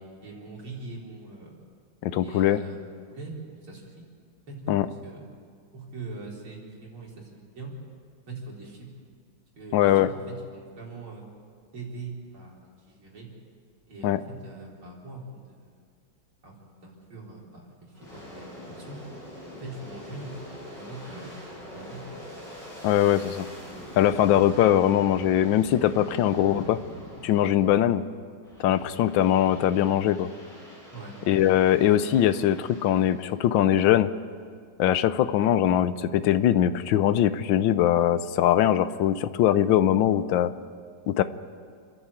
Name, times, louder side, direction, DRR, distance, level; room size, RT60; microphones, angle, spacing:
voice 1, 0.2-1.5 2.2-2.8 3.1-3.3 3.6-4.1 4.5-5.2 5.7-7.7 8.3-8.9 9.6-10.1 10.5-11.3 11.7-13.3 13.9-15.8 16.4-19.0 19.5-22.2 30.9-31.2, right 3 dB, 85° right, -3 dB, 4.9 m, -42 dB
voice 2, 2.0-2.6 4.7-4.9 9.7-10.1 14.0-14.2 22.8-23.5 24.0-26.8 27.2-28.0 28.6-30.3 31.3-34.1 34.8-40.5 41.1-41.2, left 11 dB, 70° left, 12 dB, 1.4 m, -21 dB
Aircraft, 17.9-28.0 28.4-33.4, left 1 dB, 55° left, 8.7 m, -44 dB
29.0 x 11.0 x 8.4 m, 2.1 s
omnidirectional pair, 2.3 m